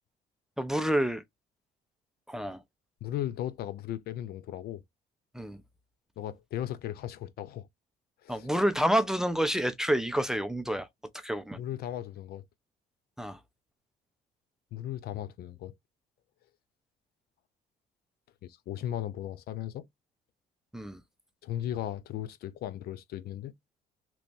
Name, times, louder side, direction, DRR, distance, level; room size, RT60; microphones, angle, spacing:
voice 1, 0.6-1.2 2.3-2.6 5.3-5.6 8.3-10.9 11.2-11.6 13.2-13.4 20.7-21.0, equal, 5° right, 0.5 m, -28 dB
voice 2, 3.0-4.8 6.2-7.7 8.2-8.5 11.6-12.4 14.7-15.7 18.4-19.9 21.4-23.5, left 12 dB, 65° left, 0.5 m, -36 dB
3.0 x 2.5 x 3.5 m
cardioid pair, 110°, 17 cm